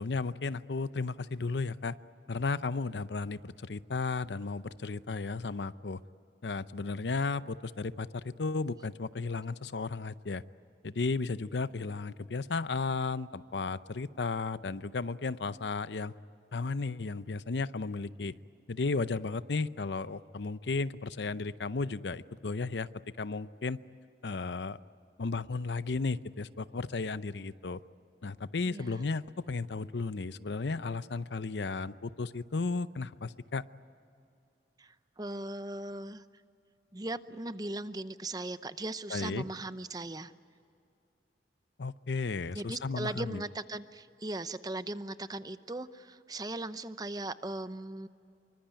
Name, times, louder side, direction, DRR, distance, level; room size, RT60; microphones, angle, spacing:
voice 1, 0.0-2.0 2.3-6.0 6.4-10.4 10.8-16.1 16.5-18.3 18.7-22.9 23.2-23.8 24.2-24.8 25.2-27.8 28.2-33.6 39.1-39.4 41.8-43.4, left 3 dB, 80° left, 15 dB, 0.7 m, -34 dB
voice 2, 28.7-29.0 34.8-36.2 36.9-40.3 42.5-48.1, right 2 dB, 20° right, 12 dB, 0.7 m, -38 dB
26.0 x 24.5 x 9.1 m, 2.5 s
head